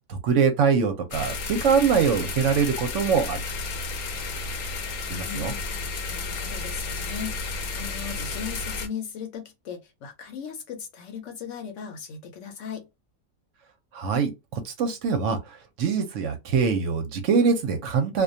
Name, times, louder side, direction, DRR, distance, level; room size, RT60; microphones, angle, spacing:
voice 1, 0.1-3.4 5.1-5.5 13.9-18.2, right 6 dB, 70° right, 0.8 m, -23 dB
sound 1, 1.1-8.9, left 3 dB, 85° left, 1.1 m, -32 dB
voice 2, 5.2-5.6 6.1-12.9, left 7 dB, 65° left, 0.8 m, -37 dB
2.4 x 2.2 x 2.6 m
omnidirectional pair, 1.5 m